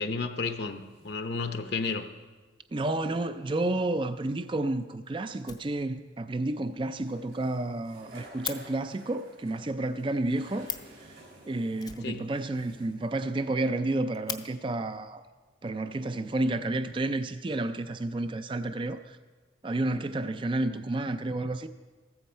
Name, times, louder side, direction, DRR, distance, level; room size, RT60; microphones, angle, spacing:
voice 1, 0.0-2.1 12.0-12.3, left 4 dB, 60° left, 0.8 m, -32 dB
sound 1, 0.6-1.1 3.8-3.9 4.7-14.2 16.0-16.6, right 2 dB, 75° right, 5.1 m, -54 dB
voice 2, 2.7-10.7 11.5-15.2 15.6-19.2 19.6-21.7, right 2 dB, 25° right, 0.4 m, -31 dB
Fire, 5.4-6.2 6.5-6.6 6.9-7.0 7.3-7.4 7.6-8.6 10.3-10.4 10.6-11.0 11.8-12.7 13.0-13.1 13.4-13.5 13.9-14.4 15.4-15.5 16.2-16.8, left 7 dB, 20° left, 0.5 m, -40 dB
15.0 x 13.5 x 4.4 m
head